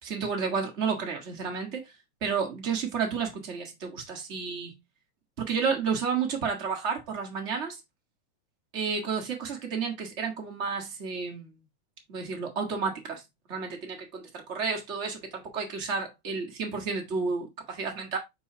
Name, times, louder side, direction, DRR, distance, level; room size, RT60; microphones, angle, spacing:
voice 1, 0.0-1.9 2.2-4.7 5.4-7.8 8.7-11.6 12.1-13.2 13.5-18.2, right 5 dB, 50° right, 0.8 m, -31 dB
6.3 x 5.4 x 2.8 m
omnidirectional pair, 4.0 m